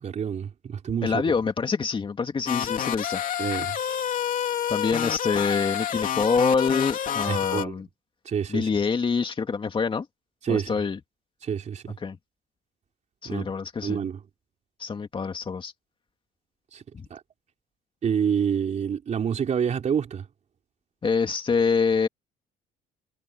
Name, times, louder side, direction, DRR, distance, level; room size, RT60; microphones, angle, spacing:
voice 1, 0.0-1.2 3.4-3.8 7.3-7.8 8.3-8.7 10.4-10.7 11.4-12.0 13.3-13.5 13.8-14.2 16.7-16.8 17.1-17.2 18.0-20.2, right 7 dB, 45° right, 4.0 m, -27 dB
voice 2, 1.0-3.2 4.7-7.9 8.5-10.1 10.5-11.0 12.0-12.2 13.2-14.0 14.8-15.7 16.9-17.1 21.0-22.1, left 5 dB, 30° left, 2.4 m, -26 dB
sound 1, 2.5-7.6, left 9 dB, 55° left, 2.9 m, -28 dB
cardioid pair, 110°, 17 cm